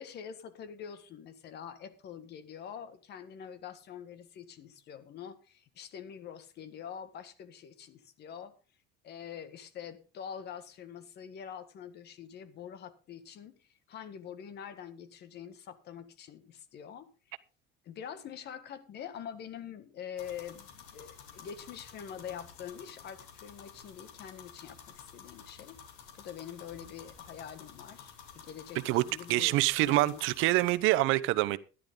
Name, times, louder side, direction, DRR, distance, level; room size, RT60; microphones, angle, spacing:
voice 1, 0.0-8.6 9.0-17.4 17.8-25.8 26.1-30.3, left 8 dB, 50° left, 1.7 m, -45 dB
sound 1, 20.2-30.8, left 7 dB, 90° left, 3.1 m, -52 dB
voice 2, 29.3-31.6, right 18 dB, 70° right, 0.8 m, -26 dB
14.0 x 11.0 x 3.8 m
cardioid pair, 130°, 21 cm